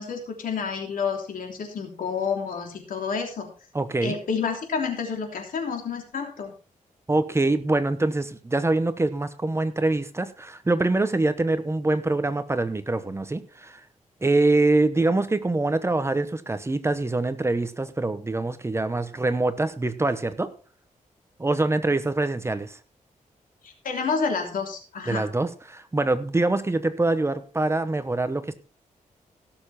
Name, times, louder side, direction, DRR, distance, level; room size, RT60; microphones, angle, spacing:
voice 1, 0.0-3.5 4.0-6.5 23.6-25.3, left 5 dB, 85° left, 3 dB, 3.2 m, -29 dB
voice 2, 3.7-4.1 7.1-13.8 14.2-20.5 21.4-22.8 25.1-28.5, right 2 dB, 20° right, 11 dB, 1.0 m, -24 dB
17.0 x 6.9 x 4.3 m, 0.37 s
wide cardioid pair, 125°, 14 cm